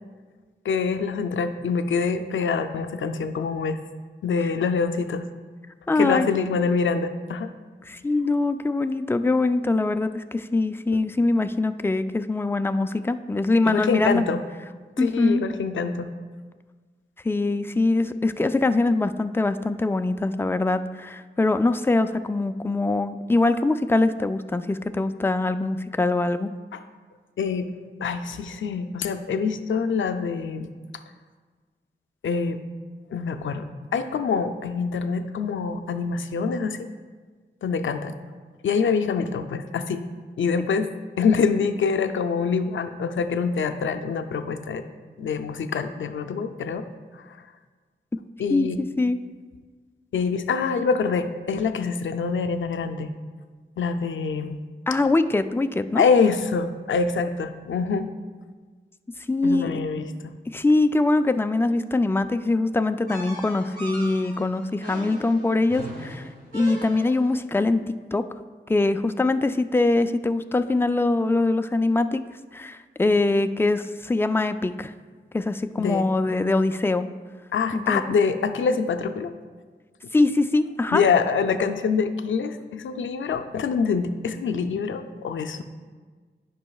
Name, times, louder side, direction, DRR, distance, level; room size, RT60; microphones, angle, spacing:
voice 1, 0.6-3.8 4.2-5.3 6.0-7.5 13.7-14.4 15.0-16.1 26.7-26.8 27.4-27.7 28.0-30.7 32.2-32.6 33.1-33.7 33.9-36.9 37.6-38.2 38.6-40.0 40.4-40.9 41.2-44.8 45.2-46.9 48.4-48.8 50.1-53.1 53.8-54.6 56.0-58.1 59.4-60.3 75.8-76.1 77.5-79.3 80.9-85.6, left 5 dB, 85° left, 8 dB, 0.4 m, -25 dB
voice 2, 5.9-6.3 7.9-14.2 15.0-15.4 17.2-26.5 48.5-49.2 54.9-56.0 59.3-59.7 60.5-66.3 66.5-67.8 68.1-68.2 68.7-72.2 72.5-74.9 75.3-77.1 77.7-78.0 80.1-81.0, left 2 dB, 10° left, 10 dB, 0.3 m, -23 dB
sound 1, 63.1-67.4, right 1 dB, 50° right, 2.0 m, -39 dB
10.5 x 5.4 x 2.3 m, 1.5 s
cardioid pair, 60°, 20 cm